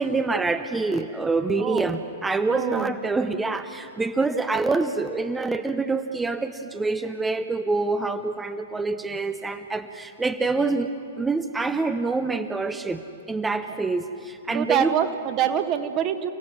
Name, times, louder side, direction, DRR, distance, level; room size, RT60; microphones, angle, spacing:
voice 1, 0.0-10.9 11.2-13.0 13.3-15.0, right 3 dB, 10° right, 9 dB, 0.7 m, -26 dB
voice 2, 2.5-2.9 14.5-16.3, right 9 dB, 30° right, 9 dB, 1.4 m, -25 dB
29.5 x 16.5 x 6.3 m, 2.5 s
figure-of-eight pair, 105°, 0 cm